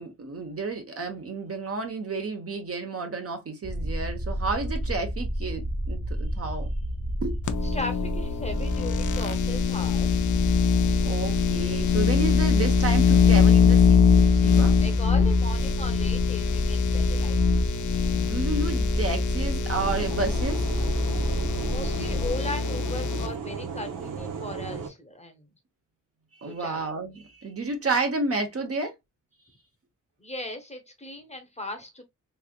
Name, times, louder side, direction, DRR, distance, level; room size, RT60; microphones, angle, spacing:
voice 1, 0.0-6.7 7.2-7.4 11.0-14.7 18.1-20.6 26.3-28.9, right 3 dB, 45° right, 0.9 m, -31 dB
sound 1, 3.6-22.3, equal, 15° right, 0.5 m, -30 dB
sound 2, 7.5-23.3, left 6 dB, 70° left, 0.5 m, -23 dB
voice 2, 7.6-10.3 14.8-17.6 21.6-25.5 26.4-26.9 30.2-32.0, left 2 dB, 20° left, 0.8 m, -37 dB
sound 3, 19.8-24.9, right 6 dB, 85° right, 0.8 m, -35 dB
3.5 x 3.2 x 2.2 m
wide cardioid pair, 110°, 32 cm